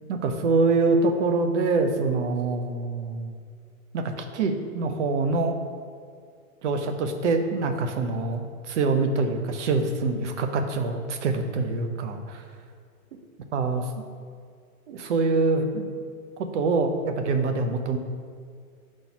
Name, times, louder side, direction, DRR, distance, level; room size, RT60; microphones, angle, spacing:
voice 1, 0.1-3.4 3.9-5.6 6.6-12.4 13.5-13.8 14.9-15.9 16.4-18.0, right 3 dB, 50° right, 6 dB, 0.7 m, -25 dB
4.6 x 4.4 x 5.9 m, 2.1 s
hypercardioid pair, 160°, 44 cm